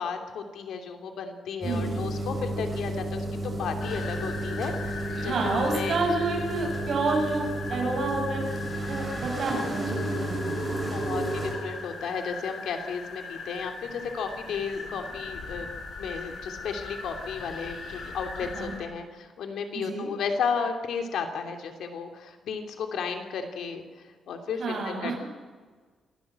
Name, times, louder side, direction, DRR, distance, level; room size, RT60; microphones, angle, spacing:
voice 1, 0.0-6.0 10.9-15.7 16.0-23.8 24.3-25.2, left 6 dB, 80° left, 5 dB, 2.9 m, -33 dB
sound 1, 1.6-11.5, right 1 dB, 15° right, 6.5 m, -32 dB
voice 2, 1.6-2.0 5.2-8.6 8.9-10.6 18.6-18.7 19.7-20.1 24.6-25.2, right 3 dB, 50° right, 0 dB, 7.2 m, -29 dB
sound 2, 3.8-18.8, left 4 dB, 60° left, 6.8 m, -39 dB
26.5 x 16.0 x 7.7 m, 1.5 s
cardioid pair, 135°, 0 cm